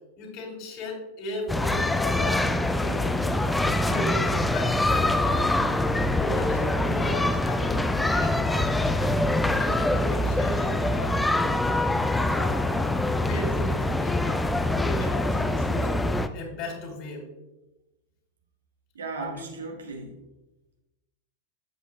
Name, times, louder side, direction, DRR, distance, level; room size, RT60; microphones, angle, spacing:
voice 1, 0.2-2.5 2.8-3.1 3.8-5.6 6.2-9.2 9.5-11.6 12.1-12.8 13.3-15.9 16.3-17.3 19.1-19.5, left 2 dB, 40° left, 1 dB, 3.0 m, -36 dB
sound 1, 1.5-16.3, left 1 dB, 5° left, 0.5 m, -24 dB
sound 2, 7.8-11.1 12.3-12.7, right 5 dB, 45° right, 1.3 m, -46 dB
voice 2, 18.9-20.2, right 3 dB, 70° right, 3 dB, 1.3 m, -36 dB
12.0 x 8.1 x 2.2 m, 1.0 s
figure-of-eight pair, 90°, 0 cm